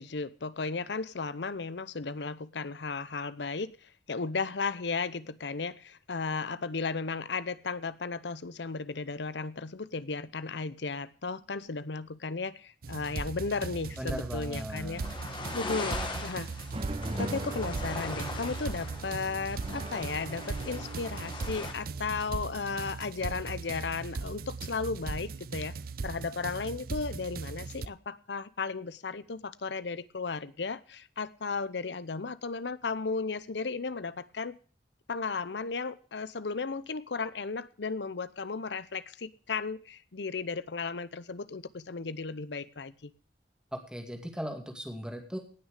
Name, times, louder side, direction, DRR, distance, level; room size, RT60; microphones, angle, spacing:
voice 1, 0.0-15.1 15.5-16.5 17.2-25.7 26.0-34.6 35.1-43.1, left 4 dB, 70° left, 0.7 m, -35 dB
sound 1, 12.8-27.9, right 4 dB, 55° right, 0.5 m, -39 dB
voice 2, 14.0-15.2 15.5-16.3 43.7-45.4, equal, 5° right, 2.3 m, -39 dB
sound 2, 15.0-21.7, left 3 dB, 25° left, 1.8 m, -40 dB
sound 3, 16.7-22.9, right 1 dB, 30° right, 1.2 m, -41 dB
18.0 x 6.5 x 6.6 m
head